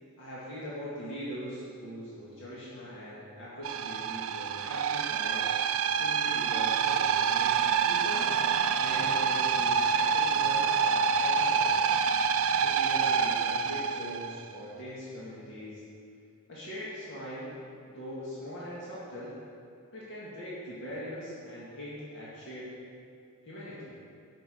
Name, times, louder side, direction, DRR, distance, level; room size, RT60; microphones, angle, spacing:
voice 1, 0.2-5.4 5.9-8.3 8.8-11.8 12.6-15.8 16.5-17.5 17.8-19.4 19.9-22.7 23.5-23.9, equal, 55° left, -8 dB, 2.0 m, -41 dB
sound 1, 3.6-14.4, right 6 dB, 65° right, 0.4 m, -27 dB
11.5 x 5.8 x 6.4 m, 2.4 s
head